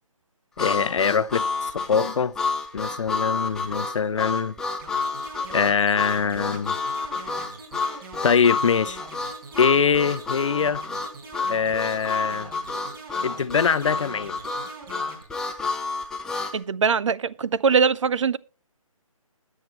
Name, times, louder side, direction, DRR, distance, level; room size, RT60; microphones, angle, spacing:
voice 1, 0.6-2.3 2.7-4.5 5.5-6.7 8.2-9.0 9.6-10.8 11.5-12.5 13.2-14.4, left 6 dB, 60° left, 0.7 m, -23 dB
Harmonica, 0.6-16.6, left 4 dB, 5° left, 0.7 m, -29 dB
sound 1, 4.8-15.2, right 4 dB, 40° right, 4.5 m, -43 dB
voice 2, 16.5-18.4, right 6 dB, 55° right, 0.7 m, -22 dB
20.5 x 7.6 x 3.1 m
hypercardioid pair, 155°, 18 cm